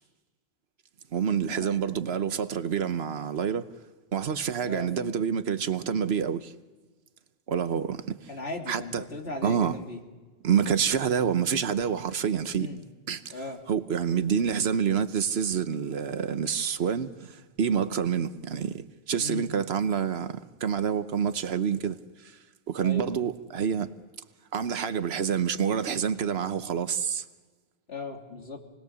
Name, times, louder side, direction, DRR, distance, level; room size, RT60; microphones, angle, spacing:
voice 1, 1.1-3.7 4.1-6.5 7.5-8.3 8.7-9.0 9.4-9.8 10.4-12.7 13.1-13.4 13.7-22.0 22.2-22.4 22.7-23.9 24.5-27.2, right 7 dB, 80° right, 1.2 m, -27 dB
voice 2, 4.6-5.2 8.3-10.0 12.5-12.8 13.3-13.6 19.2-19.5 22.8-23.1 27.9-28.6, left 2 dB, 85° left, 3.1 m, -37 dB
28.5 x 20.0 x 7.0 m
omnidirectional pair, 1.1 m